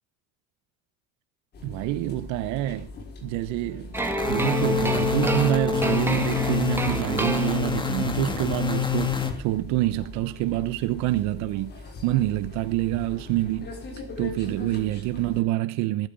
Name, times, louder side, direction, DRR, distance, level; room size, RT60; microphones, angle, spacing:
sound 1, 1.5-15.4, left 3 dB, 35° left, 6.0 m, -41 dB
voice 1, 1.6-2.9 3.2-4.0 4.3-13.8 14.2-16.1, right 16 dB, 75° right, 1.0 m, -27 dB
sound 2, 3.9-9.3, left 7 dB, 15° left, 2.8 m, -27 dB
sound 3, 3.9-8.0, right 1 dB, 10° right, 2.1 m, -28 dB
21.0 x 12.5 x 5.4 m
cardioid pair, 160°, 29 cm